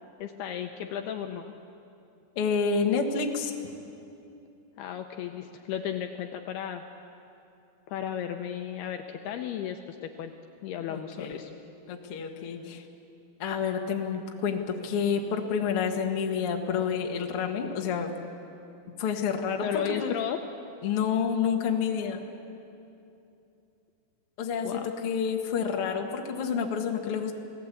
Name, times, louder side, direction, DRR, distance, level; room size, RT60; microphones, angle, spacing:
voice 1, 0.2-1.5 4.8-6.8 7.9-10.3 10.6-11.5 19.6-20.4 24.6-24.8, left 9 dB, 75° left, 5 dB, 2.5 m, -34 dB
voice 2, 2.3-3.5 10.9-11.4 11.9-12.8 13.4-18.1 19.0-20.2 20.8-22.2 24.4-27.3, left 6 dB, 55° left, 2 dB, 1.5 m, -29 dB
29.0 x 18.0 x 8.5 m, 2.7 s
omnidirectional pair, 5.3 m